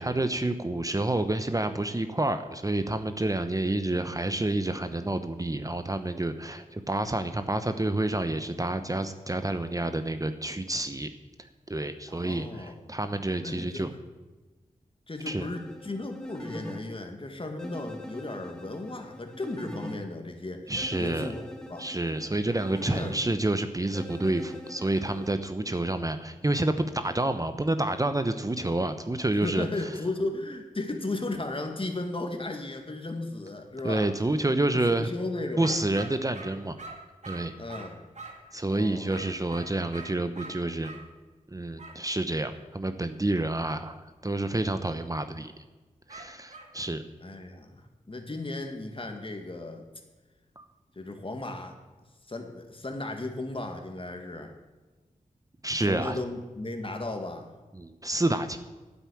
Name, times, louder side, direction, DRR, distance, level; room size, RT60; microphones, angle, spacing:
voice 1, 0.0-11.1 11.7-13.9 15.3-15.5 20.7-21.3 21.8-29.7 33.8-35.1 35.6-36.8 37.3-37.5 38.5-40.9 41.5-45.5 46.1-47.0 50.6-50.7 55.6-56.2 57.7-58.6, right 2 dB, 25° right, 9 dB, 0.9 m, -29 dB
voice 2, 12.1-12.9 13.4-14.0 15.1-20.7 21.0-21.9 22.9-23.2 29.4-34.1 34.7-35.8 37.6-38.0 38.7-39.2 47.2-49.8 51.0-51.8 52.3-54.5 55.8-57.5, left 2 dB, 35° left, 5 dB, 2.0 m, -35 dB
sound 1, 15.2-16.8 17.6-20.0 20.8-23.2 23.9-25.3, left 1 dB, 5° left, 2.2 m, -42 dB
sound 2, 35.6-38.5 39.1-41.1 41.8-42.0 46.1-46.8, right 3 dB, 50° right, 2.0 m, -44 dB
9.4 x 8.0 x 8.6 m, 1.2 s
cardioid pair, 40°, 15 cm